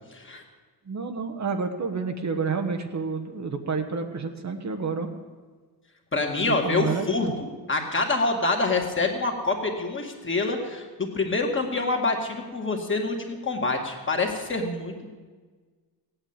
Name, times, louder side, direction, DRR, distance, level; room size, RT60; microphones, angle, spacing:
voice 1, 0.1-0.4 6.1-15.1, left 3 dB, 30° left, 2 dB, 2.3 m, -26 dB
voice 2, 0.9-5.1 6.5-7.3, right 5 dB, 40° right, 5 dB, 1.3 m, -29 dB
16.5 x 9.0 x 8.9 m, 1.4 s
cardioid pair, 125°, 41 cm